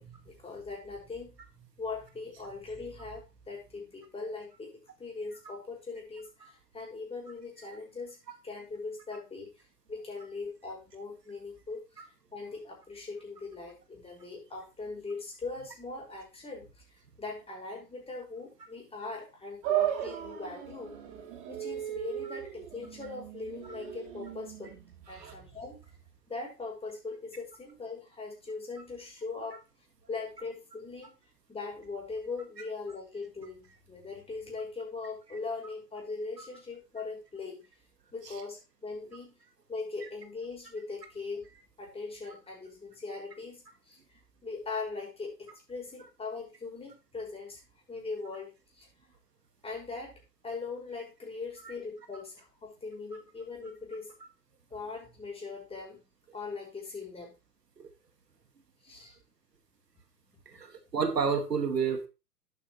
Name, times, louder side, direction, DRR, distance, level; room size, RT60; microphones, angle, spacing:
voice 1, 0.0-1.4 1.7-4.7 5.0-9.5 9.9-11.8 12.3-16.7 17.2-21.0 21.5-24.7 25.1-25.8 26.3-29.6 30.1-31.2 31.5-37.6 38.1-39.4 39.7-41.5 41.8-44.0 44.4-47.6 47.9-48.9 49.6-54.1 54.7-56.0 56.3-57.3 58.8-59.1 60.5-60.7, left 3 dB, 10° left, -2 dB, 6.0 m, -40 dB
sound 1, 19.6-26.1, right 11 dB, 45° right, 3.2 m, -36 dB
voice 2, 60.5-62.1, right 6 dB, 85° right, 7 dB, 2.2 m, -30 dB
11.0 x 9.0 x 3.2 m, 0.28 s
hypercardioid pair, 105°, 47 cm